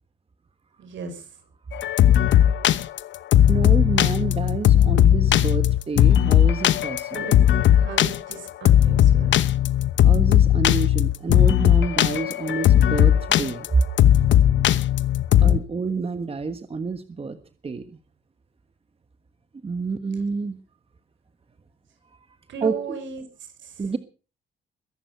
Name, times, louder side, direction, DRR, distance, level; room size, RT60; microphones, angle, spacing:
voice 1, 0.8-1.2 7.1-7.4 7.7-9.4 15.3-15.5 22.5-23.3 23.6-23.7, right 5 dB, 70° right, 9 dB, 5.4 m, -36 dB
sound 1, 1.7-15.6, left 11 dB, 70° left, 1.0 m, -17 dB
voice 2, 3.5-7.3 10.0-13.8 15.4-17.4 17.6-17.8 19.6-20.6 22.6-23.0 23.8-24.0, right 4 dB, 30° right, 10 dB, 1.4 m, -28 dB
22.0 x 11.0 x 5.8 m, 0.38 s
cardioid pair, 90°, 20 cm